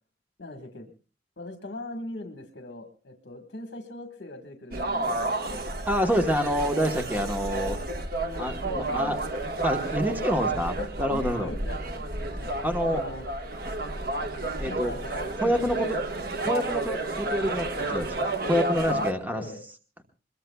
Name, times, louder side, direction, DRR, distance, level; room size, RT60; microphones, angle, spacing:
voice 1, 0.4-0.9 1.4-5.5 8.2-9.3 10.8-12.0 12.4-12.5 12.8-13.2 14.7-16.0 18.7-19.1 19.3-19.6, left 1 dB, 65° left, 4 dB, 1.6 m, -40 dB
sound 1, 4.7-19.1, right 2 dB, 55° right, 1.4 m, -31 dB
voice 2, 5.9-7.8 8.4-9.2 9.6-11.5 12.6-13.0 14.6-14.9 15.4-16.0 16.4-19.4, equal, 10° right, 5 dB, 1.2 m, -27 dB
23.5 x 21.5 x 2.3 m, 0.36 s
head